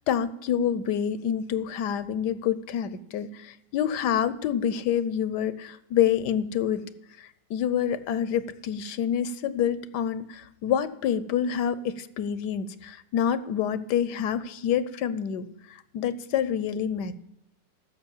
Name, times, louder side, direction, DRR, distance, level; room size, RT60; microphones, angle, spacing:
voice 1, 0.1-6.9 7.2-17.2, left 9 dB, 75° left, 15 dB, 1.2 m, -27 dB
14.5 x 6.5 x 7.2 m, 0.77 s
omnidirectional pair, 1.9 m